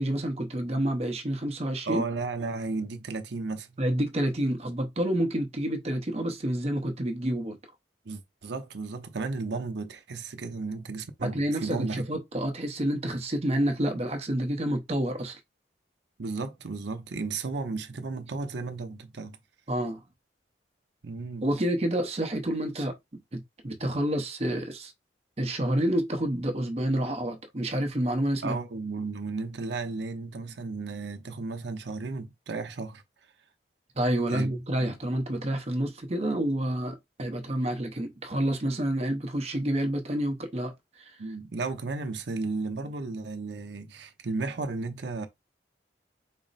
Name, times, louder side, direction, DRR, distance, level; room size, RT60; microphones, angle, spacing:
voice 1, 0.0-2.0 3.8-7.6 11.2-15.4 19.7-20.0 21.4-24.9 25.4-28.6 34.0-41.1, right 1 dB, 35° right, 0.8 m, -29 dB
voice 2, 1.9-3.8 8.1-12.0 16.2-19.4 21.0-21.4 28.4-33.0 34.3-34.5 34.8-35.0 41.2-45.3, right 3 dB, 70° right, 0.7 m, -34 dB
4.1 x 2.1 x 4.0 m
head